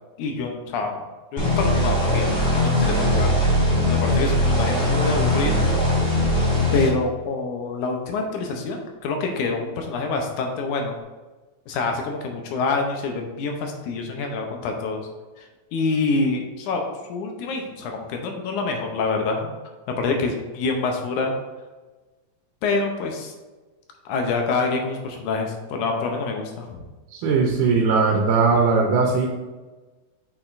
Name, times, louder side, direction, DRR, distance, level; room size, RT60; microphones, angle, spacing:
voice 1, 0.2-1.0 1.3-3.4 3.9-5.6 6.7-11.0 11.7-15.1 15.4-19.5 20.0-21.3 22.6-23.3 24.1-26.8, left 3 dB, 80° left, 3 dB, 2.3 m, -26 dB
sound 1, 1.4-6.9, left 1 dB, 20° left, 1.5 m, -20 dB
voice 2, 27.1-29.3, right 4 dB, 90° right, 0 dB, 2.3 m, -19 dB
6.4 x 5.8 x 2.6 m, 1.2 s
omnidirectional pair, 3.5 m